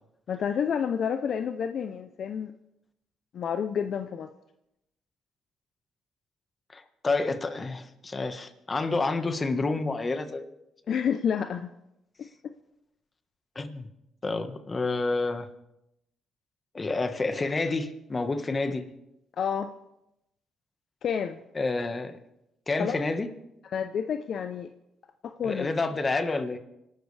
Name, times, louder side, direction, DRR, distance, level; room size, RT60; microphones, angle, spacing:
voice 1, 0.3-2.5 3.3-4.3 10.9-11.7 12.2-12.3 19.4-19.7 21.0-21.4 22.8-23.0 23.7-24.7 25.2-25.7, left 7 dB, 60° left, 9 dB, 0.7 m, -29 dB
voice 2, 6.7-10.5 13.5-13.9 14.2-15.5 16.7-18.9 21.5-22.2 22.7-23.3 25.4-26.6, left 3 dB, 30° left, 8 dB, 1.5 m, -29 dB
25.5 x 12.5 x 3.4 m, 0.84 s
cardioid pair, 90°, 0 cm